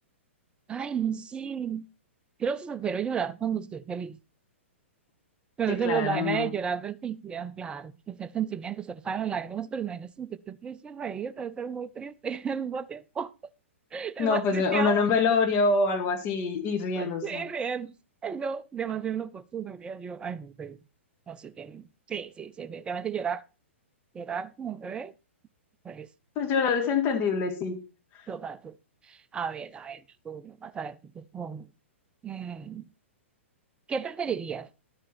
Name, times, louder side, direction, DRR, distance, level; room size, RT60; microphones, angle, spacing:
voice 1, 0.7-1.9 2.4-4.2 5.6-13.3 13.9-15.0 17.0-17.9 18.2-20.8 21.3-23.4 24.1-25.1 25.8-26.1 28.3-28.8 29.0-31.7 32.2-32.9 33.9-34.7, right 7 dB, 15° right, 0.5 m, -33 dB
voice 2, 5.8-6.5 14.2-17.4 26.4-27.8, left 4 dB, 35° left, 1.9 m, -25 dB
12.0 x 8.7 x 4.3 m
figure-of-eight pair, 115°, 7 cm